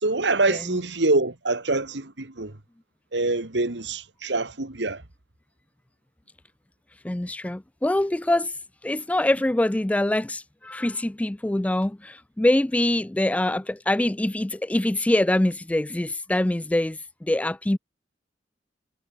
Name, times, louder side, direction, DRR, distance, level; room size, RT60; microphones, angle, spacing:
voice 1, 0.0-2.5 3.1-5.0, right 2 dB, 80° right, 2.1 m, -25 dB
voice 2, 7.0-8.5 8.8-17.8, left 1 dB, 10° left, 0.3 m, -24 dB
head